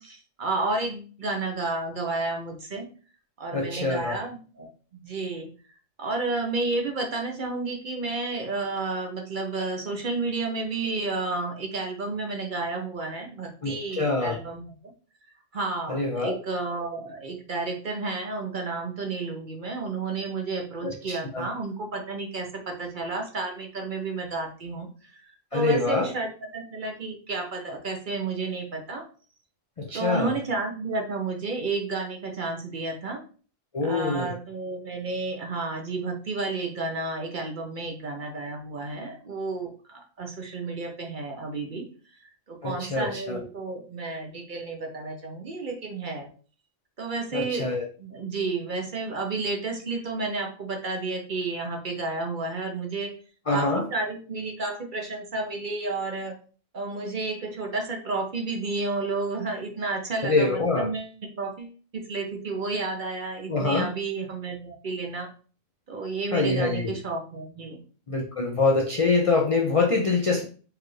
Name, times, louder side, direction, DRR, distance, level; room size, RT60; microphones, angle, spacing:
voice 1, 0.0-2.9 3.4-5.5 6.0-14.7 15.5-29.1 29.9-33.2 33.8-41.9 42.2-46.3 47.0-47.7 48.0-53.1 53.5-56.3 56.7-61.1 61.4-65.3 65.9-67.8, right 3 dB, 50° right, 2 dB, 0.7 m, -31 dB
voice 2, 3.5-4.1 13.6-14.4 15.9-16.3 20.8-21.5 25.5-26.1 29.8-30.4 33.7-34.3 42.6-43.4 47.3-47.9 53.5-53.9 60.2-60.9 63.5-63.9 66.3-66.9 68.1-70.4, left 3 dB, 55° left, 1 dB, 0.3 m, -25 dB
4.7 x 2.4 x 3.1 m, 0.39 s
omnidirectional pair, 1.3 m